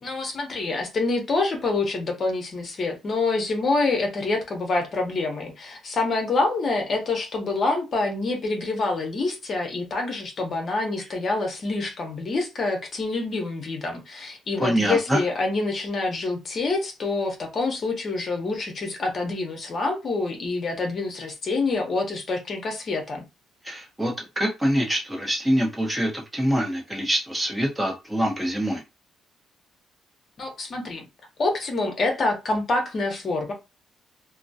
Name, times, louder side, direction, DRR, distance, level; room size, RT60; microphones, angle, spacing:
voice 1, 0.0-23.2 30.4-31.1 31.4-33.5, left 3 dB, 50° left, 0.8 m, -26 dB
voice 2, 14.6-15.2 23.6-28.8, equal, 10° right, 1.0 m, -25 dB
2.2 x 2.2 x 2.7 m
cardioid pair, 90°, 0 cm